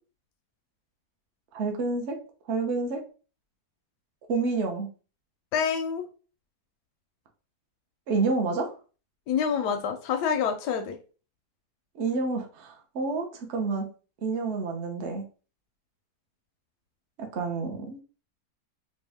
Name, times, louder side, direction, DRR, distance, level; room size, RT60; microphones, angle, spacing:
voice 1, 1.5-2.1 2.5-3.0 4.3-4.9 8.1-8.7 12.0-13.9 14.2-15.2 17.2-18.0, right 3 dB, 55° right, 3 dB, 0.9 m, -28 dB
voice 2, 5.5-6.1 9.3-11.0, left 7 dB, 85° left, 5 dB, 1.2 m, -27 dB
4.3 x 2.3 x 3.4 m, 0.36 s
omnidirectional pair, 1.7 m